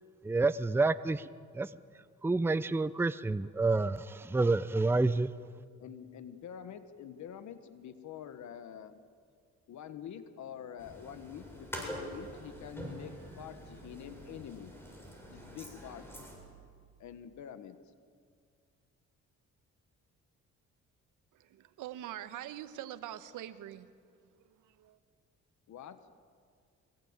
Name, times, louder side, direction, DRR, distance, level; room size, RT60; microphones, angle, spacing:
voice 1, 0.2-1.2 1.6-1.7 2.2-5.3, right 3 dB, 10° right, 15 dB, 0.6 m, -28 dB
voice 2, 5.8-9.0 9.7-14.7 15.3-16.2 17.0-17.8 25.7-26.0, left 9 dB, 70° left, 11 dB, 1.4 m, -46 dB
sound 1, 10.8-16.4, equal, 10° left, 7.3 m, -45 dB
voice 3, 21.3-23.9 24.4-25.0, right 12 dB, 90° right, 12 dB, 1.2 m, -44 dB
23.5 x 20.5 x 8.9 m, 2.1 s
cardioid pair, 90°, 30 cm